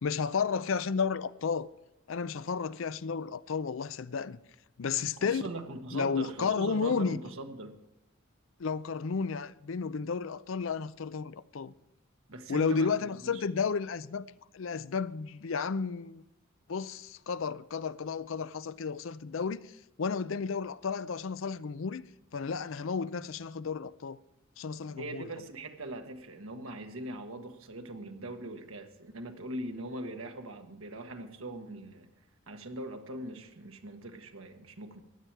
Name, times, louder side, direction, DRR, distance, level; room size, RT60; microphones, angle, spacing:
voice 1, 0.0-1.7 2.1-4.4 4.8-5.4 5.9-7.2 8.6-11.7 12.5-14.3 14.5-16.2 16.7-19.6 20.0-22.0 22.3-24.2 24.6-25.3, left 5 dB, 70° left, 0.5 m, -32 dB
voice 2, 5.2-7.8 12.3-13.4 25.0-32.1 32.5-35.0, right 2 dB, 80° right, 1.4 m, -41 dB
15.5 x 10.5 x 4.6 m
head